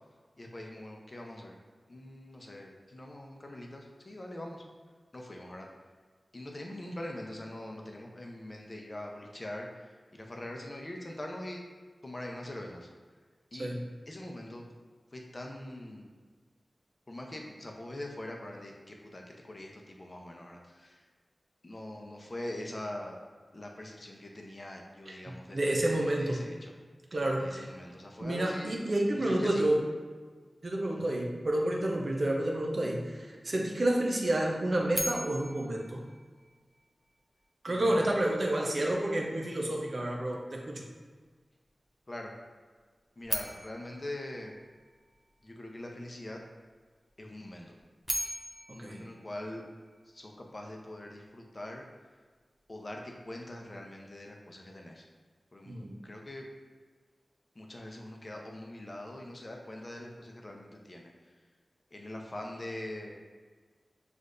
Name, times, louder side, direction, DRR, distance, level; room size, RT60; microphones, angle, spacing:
voice 1, 0.4-1.6 1.9-4.6 5.1-5.7 6.3-11.6 12.0-12.9 13.5-13.7 14.1-14.6 15.1-16.1 17.1-21.1 21.6-23.2 23.5-26.7 27.4-28.7 29.1-29.7 30.9-31.2 37.7-39.0 42.1-42.3 43.2-44.5 45.4-46.4 47.2-47.8 48.7-49.6 50.0-51.8 52.7-55.0 55.5-55.7 56.0-56.5 57.5-61.1 61.9-63.2, left 1 dB, 40° left, 1 dB, 0.7 m, -43 dB
voice 2, 25.5-26.4 27.1-27.6 28.2-29.8 30.6-36.0 37.6-40.8 48.8-49.0 55.7-56.0, right 1 dB, 55° right, -1 dB, 0.7 m, -29 dB
sound 1, 34.9-37.1 43.2-45.4 47.8-50.2, equal, 5° left, 0.5 m, -39 dB
6.3 x 2.5 x 2.5 m, 1.5 s
cardioid pair, 50°, 0 cm